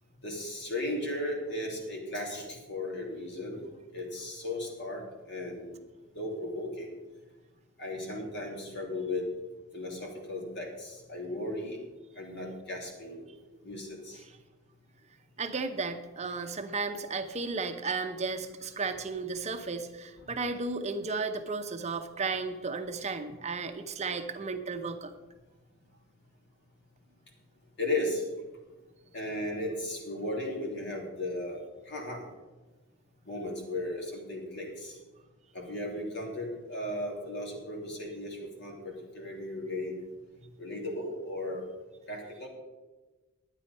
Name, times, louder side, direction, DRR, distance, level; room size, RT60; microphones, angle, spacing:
voice 1, 0.2-3.7 3.9-5.8 6.1-6.9 7.8-9.3 9.7-11.8 12.1-13.2 13.6-14.2 20.3-20.4 27.8-28.2 29.1-31.6 31.9-32.2 33.3-35.0 35.5-39.9 40.6-41.6 42.1-42.5, left 1 dB, 55° left, 0 dB, 2.8 m, -36 dB
voice 2, 15.4-25.1, right 4 dB, 35° right, 7 dB, 0.7 m, -34 dB
11.0 x 9.0 x 5.4 m, 1.2 s
head